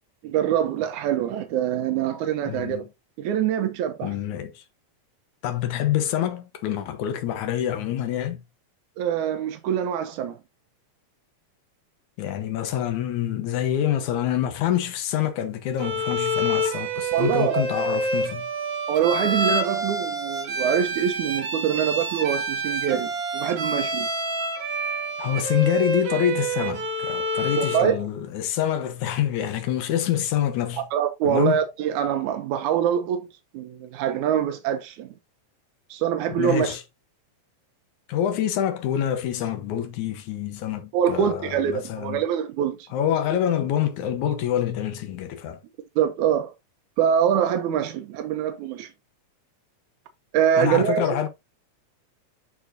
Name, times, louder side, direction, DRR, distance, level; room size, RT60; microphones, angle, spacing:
voice 1, 0.2-2.9 3.2-4.2 9.0-10.4 17.1-17.9 18.9-24.1 27.6-28.0 30.9-33.3 33.5-35.1 35.9-36.8 40.9-42.9 46.0-46.5 47.0-48.9 50.3-51.2, right 9 dB, 85° right, 2.2 m, -24 dB
voice 2, 2.5-2.9 4.0-4.6 5.4-8.4 12.2-18.5 25.2-30.8 31.2-31.6 36.4-36.8 38.1-42.2 42.9-45.6 50.6-51.3, left 10 dB, 85° left, 2.5 m, -26 dB
Bowed string instrument, 15.8-27.9, right 1 dB, 55° right, 2.4 m, -27 dB
11.0 x 4.3 x 2.7 m
omnidirectional pair, 3.3 m